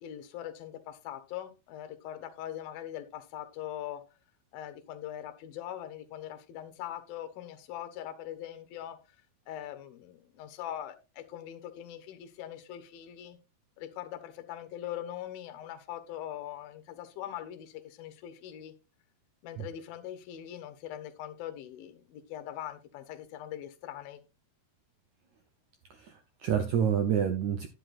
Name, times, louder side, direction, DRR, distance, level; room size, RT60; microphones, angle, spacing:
voice 1, 0.0-4.0 4.5-9.0 9.5-13.4 13.8-18.7 19.4-24.2, left 11 dB, 70° left, 2.8 m, -42 dB
voice 2, 25.9-27.7, right 8 dB, 80° right, 1.6 m, -28 dB
12.0 x 9.9 x 2.5 m
omnidirectional pair, 4.6 m